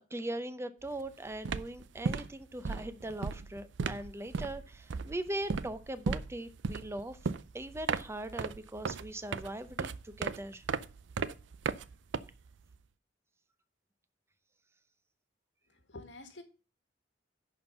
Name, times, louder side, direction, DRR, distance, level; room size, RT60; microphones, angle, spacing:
voice 1, 0.1-7.2 7.5-10.6, right 1 dB, 15° right, 12 dB, 0.6 m, -40 dB
sound 1, 0.8-1.1 1.3-12.7, right 5 dB, 80° right, 0.5 m, -36 dB
voice 2, 15.7-16.4, left 2 dB, 80° left, 8 dB, 1.7 m, -48 dB
11.0 x 4.5 x 6.6 m, 0.34 s
head